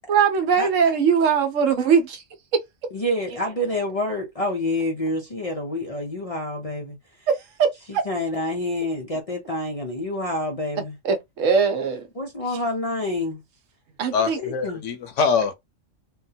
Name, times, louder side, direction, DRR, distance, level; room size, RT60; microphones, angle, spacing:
voice 1, 0.1-2.2 2.5-2.6 7.6-8.0 11.0-12.1 14.0-14.4, right 6 dB, 75° right, 1.1 m, -20 dB
voice 2, 2.9-7.3 7.9-11.0 12.2-13.4 14.4-14.8, left 1 dB, 45° left, 0.5 m, -28 dB
voice 3, 14.1-15.5, left 5 dB, 70° left, 1.0 m, -23 dB
3.6 x 2.2 x 2.7 m
omnidirectional pair, 1.3 m